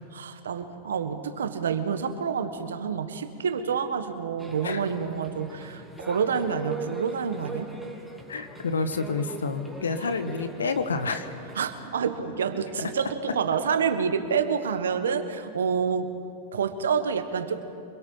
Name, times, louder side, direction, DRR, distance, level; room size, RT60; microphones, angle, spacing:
voice 1, 0.1-7.7 11.5-16.1 16.5-17.6, right 6 dB, 80° right, 9 dB, 1.4 m, -28 dB
sound 1, 4.4-11.6, right 2 dB, 5° left, 3.2 m, -41 dB
voice 2, 8.3-11.3, left 4 dB, 90° left, 9 dB, 1.3 m, -29 dB
25.5 x 22.0 x 5.6 m, 2.6 s
hypercardioid pair, 100°, 0 cm